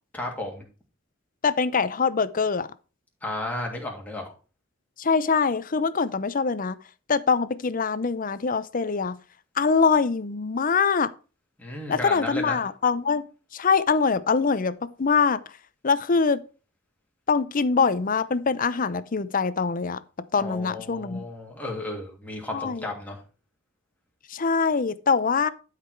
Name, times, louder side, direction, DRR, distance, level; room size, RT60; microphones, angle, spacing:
voice 1, 0.1-0.6 3.2-4.3 11.6-12.6 20.4-23.2, left 1 dB, 10° left, 2.8 m, -33 dB
voice 2, 1.4-2.7 5.0-6.8 7.1-9.2 9.6-11.1 11.9-13.2 13.5-15.4 15.8-16.4 17.3-20.0 20.3-21.3 22.5-22.9 24.3-25.5, left 5 dB, 45° left, 0.6 m, -23 dB
12.0 x 5.0 x 4.5 m
head